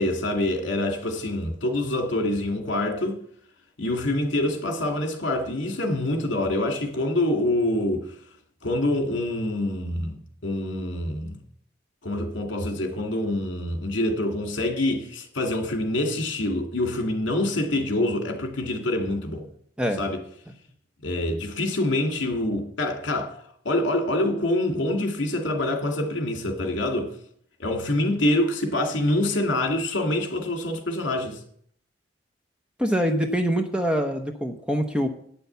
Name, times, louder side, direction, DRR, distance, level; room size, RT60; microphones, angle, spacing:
voice 1, 0.0-3.2 3.8-8.0 8.6-10.2 10.4-11.4 12.0-19.4 20.0-20.2 21.0-23.4 23.6-27.1 27.6-31.4, left 1 dB, 70° left, 2.3 m, -26 dB
voice 2, 32.8-35.1, equal, 5° right, 0.8 m, -24 dB
9.4 x 6.9 x 8.0 m
head